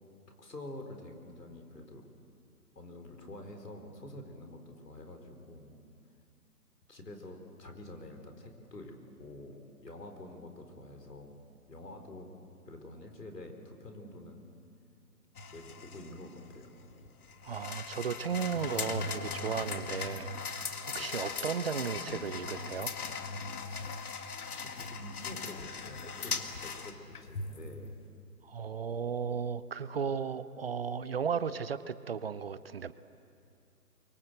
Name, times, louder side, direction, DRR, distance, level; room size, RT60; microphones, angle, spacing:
voice 1, 0.4-2.1 2.7-5.8 6.9-11.3 11.7-12.3 12.7-14.5 15.5-16.9 19.8-19.9 20.9-21.2 24.6-26.3 26.6-28.0, left 1 dB, 85° left, 5 dB, 4.5 m, -47 dB
sound 1, 15.4-27.7, left 4 dB, 65° left, 2.0 m, -39 dB
voice 2, 17.4-22.9 28.4-32.9, right 6 dB, 40° right, 15 dB, 0.6 m, -35 dB
24.0 x 24.0 x 8.0 m, 2.4 s
hypercardioid pair, 145°, 47 cm